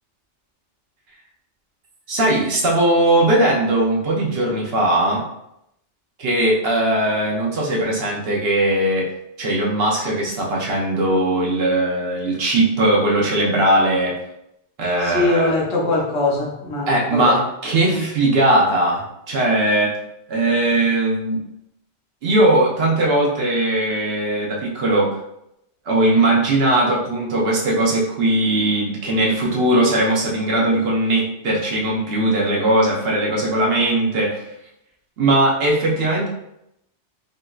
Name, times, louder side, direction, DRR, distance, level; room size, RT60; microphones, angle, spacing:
voice 1, 2.1-5.3 6.2-9.1 9.4-14.2 14.8-15.5 16.9-20.0 20.3-21.4 22.2-25.2 25.9-34.4 35.2-36.3, right 1 dB, 60° right, -2 dB, 0.9 m, -19 dB
voice 2, 15.0-17.4 17.9-18.1, left 2 dB, 70° left, -1 dB, 1.0 m, -22 dB
3.7 x 2.6 x 2.3 m, 0.81 s
omnidirectional pair, 1.2 m